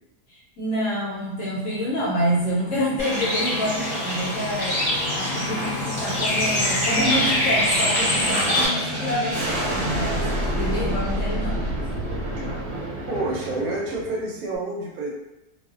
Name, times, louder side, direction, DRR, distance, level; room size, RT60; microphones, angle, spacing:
voice 1, 0.3-4.8 5.1-11.8, equal, 60° left, -7 dB, 1.0 m, -27 dB
Aircraft, 1.5-14.3, equal, 50° right, 0.9 m, -30 dB
Bird, 3.0-8.7, left 1 dB, 25° left, 0.8 m, -24 dB
voice 2, 13.1-15.1, right 2 dB, 75° right, -2 dB, 1.0 m, -28 dB
2.5 x 2.3 x 2.4 m, 0.93 s
omnidirectional pair, 1.7 m